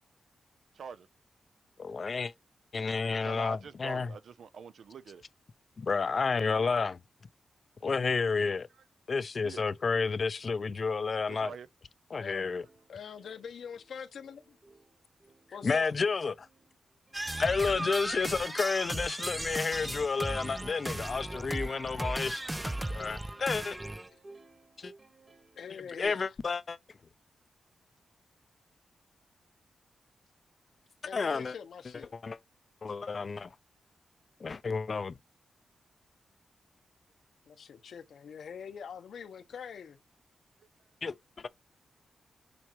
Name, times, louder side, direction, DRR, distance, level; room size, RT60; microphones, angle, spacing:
voice 1, 0.7-1.1 1.8-2.3 3.2-5.2 8.7-8.8 9.4-9.6 11.3-11.7 40.6-40.7, right 6 dB, 75° right, 0.6 m, -46 dB
voice 2, 1.8-2.3 2.7-4.1 5.8-7.0 7.8-8.7 9.1-11.5 12.1-12.7 15.6-16.5 17.2-23.8 24.8-24.9 26.0-26.8 31.1-31.5 32.1-32.4 32.8-33.5 34.4-35.2 41.0-41.5, left 4 dB, 45° left, 0.5 m, -31 dB
voice 3, 12.1-12.5 12.9-14.6 15.5-15.9 24.1-24.2 25.5-26.3 31.0-32.1 37.5-40.0, left 7 dB, 80° left, 0.9 m, -44 dB
Plucked string instrument, 12.5-26.1, right 2 dB, 30° right, 1.6 m, -59 dB
sound 1, 17.1-24.1, right 1 dB, 15° right, 0.3 m, -36 dB
7.7 x 4.4 x 3.0 m
wide cardioid pair, 110°, 0 cm